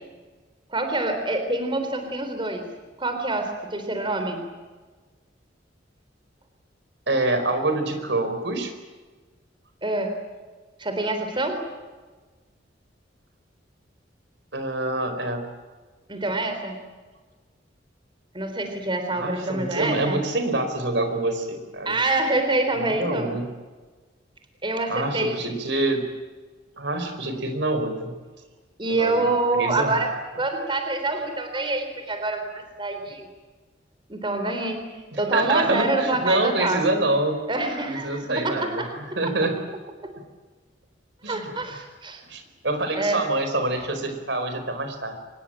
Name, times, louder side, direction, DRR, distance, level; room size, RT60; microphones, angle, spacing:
voice 1, 0.7-2.6 3.0-4.4 9.8-10.2 10.8-11.6 16.1-16.8 18.3-20.2 21.9-23.4 24.6-25.4 28.8-30.1 30.4-33.3 34.1-36.8 37.5-38.9 39.2-39.3 41.3-42.2 43.0-43.2, right 2 dB, 25° right, 6 dB, 3.7 m, -26 dB
voice 2, 7.1-8.7 14.5-15.5 19.1-22.0 22.8-23.4 24.9-26.0 26.8-28.1 29.0-29.2 29.5-30.0 35.1-37.4 37.9-38.8 39.2-39.5 41.2-41.4 42.3-45.2, right 2 dB, 70° right, 7 dB, 4.6 m, -26 dB
25.0 x 21.0 x 9.0 m, 1.3 s
head